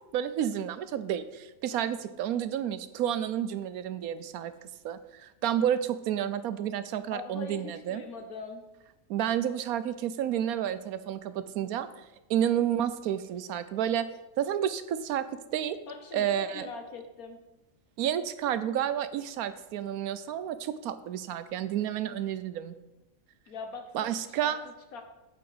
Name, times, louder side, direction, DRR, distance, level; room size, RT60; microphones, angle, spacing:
voice 1, 0.1-8.0 9.1-11.9 12.3-14.1 14.4-15.8 16.1-16.7 18.0-22.7 23.9-24.6, right 10 dB, 85° right, 13 dB, 1.1 m, -30 dB
voice 2, 7.1-8.6 15.9-17.4 23.5-25.0, left 4 dB, 90° left, 5 dB, 1.7 m, -42 dB
8.1 x 8.1 x 5.0 m, 0.99 s
omnidirectional pair, 1.5 m